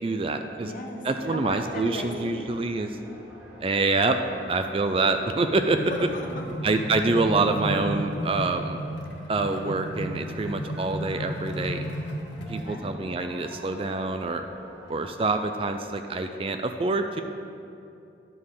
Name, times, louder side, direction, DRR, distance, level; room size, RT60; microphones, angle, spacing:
voice 1, 0.0-0.7 1.0-2.9 3.6-4.2 4.5-5.8 6.6-8.8 9.3-11.9 12.5-14.5 14.9-17.2, right 3 dB, 30° right, 7 dB, 0.4 m, -26 dB
voice 2, 0.6-2.5 5.9-6.4 6.7-6.8 12.6-13.0, left 1 dB, 45° left, 1 dB, 1.1 m, -37 dB
sound 1, 1.1-15.7, right 1 dB, 5° right, 2.5 m, -48 dB
sound 2, 5.2-12.8, equal, 75° left, 1.1 m, -34 dB
11.0 x 5.6 x 6.4 m, 2.7 s
head